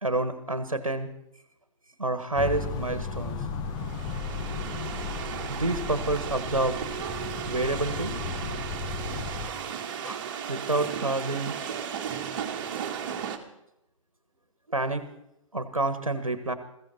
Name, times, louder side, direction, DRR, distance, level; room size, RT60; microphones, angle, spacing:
voice 1, 0.0-1.1 2.0-3.4 5.5-6.8 7.5-8.2 9.5-9.6 10.0-10.2 10.5-11.6 14.7-15.0 15.5-16.5, right 2 dB, 85° right, 11 dB, 1.4 m, -28 dB
sound 1, 2.4-9.5, left 5 dB, 25° left, 1.3 m, -35 dB
sound 2, 3.7-13.4, right 8 dB, 40° right, 1.9 m, -35 dB
21.0 x 15.5 x 4.2 m, 0.82 s
figure-of-eight pair, 120°, 17 cm